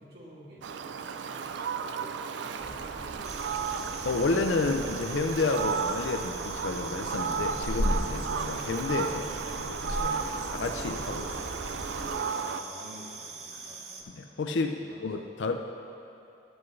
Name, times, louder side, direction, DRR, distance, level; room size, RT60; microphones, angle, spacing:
voice 1, 0.0-3.7 12.1-14.4 14.8-15.0, right 1 dB, 65° right, -7 dB, 2.1 m, -50 dB
Fowl, 0.6-12.6, right 6 dB, 85° right, 0.4 m, -34 dB
sound 1, 2.6-12.1, equal, 55° left, 2.2 m, -38 dB
sound 2, 3.2-14.0, right 4 dB, 35° right, 0.6 m, -43 dB
voice 2, 4.0-9.3 9.6-10.2 10.5-11.5 14.1-15.6, left 3 dB, 90° left, 5 dB, 0.5 m, -30 dB
12.0 x 7.9 x 3.2 m, 2.7 s
head